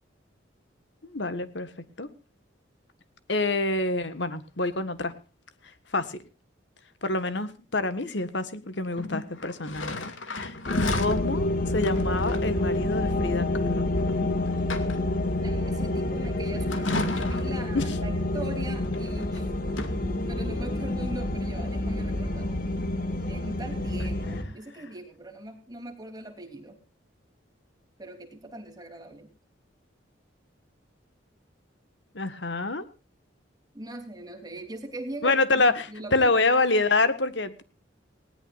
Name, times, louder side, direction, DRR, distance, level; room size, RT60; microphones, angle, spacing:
voice 1, 1.1-1.7 2.0-2.1 3.3-5.1 5.9-6.2 7.0-10.6 10.9-11.5 11.7-13.9 17.7-18.0 32.1-32.8 35.2-37.6, left 2 dB, 65° left, 12 dB, 1.7 m, -27 dB
sound 1, 8.9-11.2 11.8-12.5 14.0-14.1 14.5-15.2 16.7-17.6 18.8-19.4 19.7-19.9, left 2 dB, 85° left, 2.4 m, -33 dB
sound 2, 10.7-24.4, left 1 dB, 50° left, 2.3 m, -28 dB
voice 2, 15.4-19.5 20.3-22.5 23.3-26.8 28.0-29.3 33.7-35.6 35.9-36.3, right 1 dB, 20° right, 3 dB, 3.3 m, -40 dB
19.5 x 18.5 x 2.6 m, 0.34 s
head